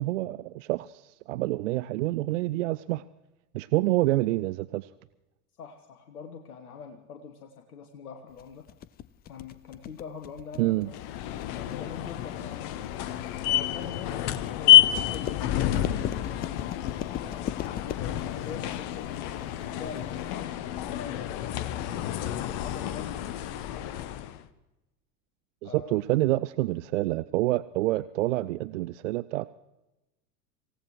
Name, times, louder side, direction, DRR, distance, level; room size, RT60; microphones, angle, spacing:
voice 1, 0.0-3.0 3.5-4.9 10.6-10.9 25.6-29.5, right 17 dB, 55° right, 16 dB, 0.5 m, -27 dB
voice 2, 5.6-8.7 9.2-11.0 11.5-12.8 13.4-15.9 16.3-17.6 17.9-21.7 22.2-24.3 25.6-26.0, left 6 dB, 70° left, 5 dB, 1.3 m, -44 dB
sound 1, 8.4-20.4, left 10 dB, 20° left, 0.5 m, -39 dB
sound 2, 10.9-24.4, left 12 dB, 45° left, 0.9 m, -28 dB
26.0 x 16.5 x 3.1 m, 0.99 s
figure-of-eight pair, 75°, 46 cm